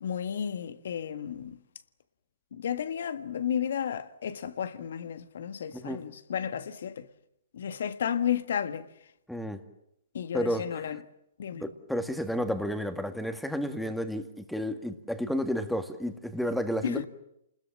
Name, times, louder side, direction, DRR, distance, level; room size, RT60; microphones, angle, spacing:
voice 1, 0.0-1.6 2.5-7.1 7.5-8.9 10.1-11.0 11.4-11.6 16.8-17.0, left 8 dB, 65° left, 1.6 m, -32 dB
voice 2, 9.3-9.6 10.3-10.7 11.5-17.0, equal, ahead, 2.0 m, -31 dB
29.5 x 21.0 x 7.5 m
hypercardioid pair, 135°, 0 cm